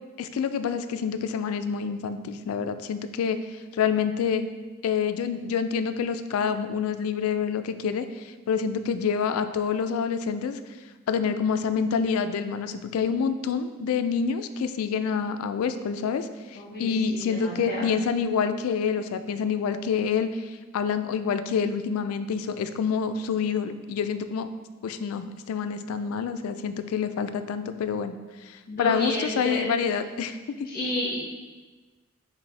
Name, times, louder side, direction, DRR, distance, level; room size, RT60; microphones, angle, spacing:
voice 1, 0.2-3.4 3.8-4.5 4.8-8.1 8.5-10.6 11.1-24.5 24.8-28.2 28.4-30.7, left 6 dB, 80° left, 10 dB, 0.3 m, -27 dB
voice 2, 16.5-17.9 28.7-29.8 30.6-31.2, left 1 dB, 45° left, -5 dB, 1.2 m, -31 dB
6.0 x 2.6 x 3.2 m, 1.3 s
head